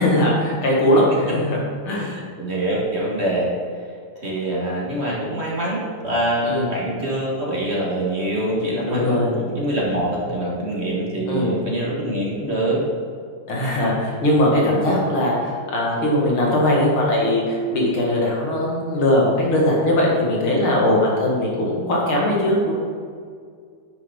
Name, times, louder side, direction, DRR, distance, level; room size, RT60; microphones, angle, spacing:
voice 1, 0.0-2.1 6.4-6.7 8.9-9.3 11.3-11.6 13.5-22.7, left 1 dB, 80° left, -3 dB, 2.8 m, -20 dB
voice 2, 2.0-3.5 4.2-12.8, right 1 dB, 30° right, -3 dB, 1.9 m, -24 dB
9.4 x 8.7 x 3.9 m, 2.1 s
omnidirectional pair, 2.3 m